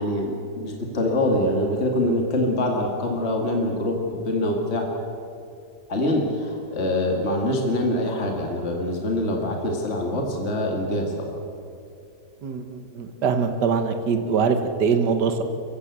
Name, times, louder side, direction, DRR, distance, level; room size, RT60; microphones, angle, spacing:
voice 1, 0.0-4.9 5.9-11.3, left 1 dB, 40° left, 1 dB, 2.5 m, -24 dB
voice 2, 12.4-15.4, right 5 dB, 70° right, 7 dB, 1.9 m, -23 dB
25.5 x 15.5 x 8.2 m, 2.5 s
omnidirectional pair, 1.8 m